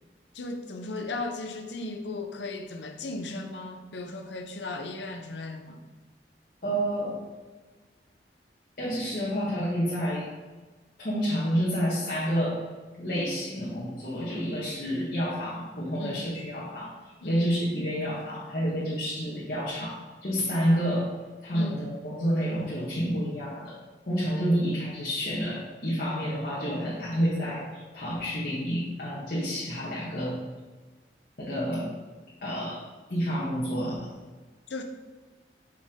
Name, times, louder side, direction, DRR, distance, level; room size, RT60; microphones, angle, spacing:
voice 1, 0.3-5.8 16.0-16.2 17.2-17.5 21.5-21.9 34.7-34.8, left 2 dB, 90° left, 5 dB, 0.7 m, -36 dB
voice 2, 6.6-7.2 8.8-10.3 11.0-12.6 13.0-21.1 21.4-23.7 24.1-30.4 31.4-31.9 32.4-32.8 33.1-34.1, equal, 55° left, -7 dB, 1.4 m, -29 dB
5.8 x 5.2 x 3.7 m, 1.3 s
head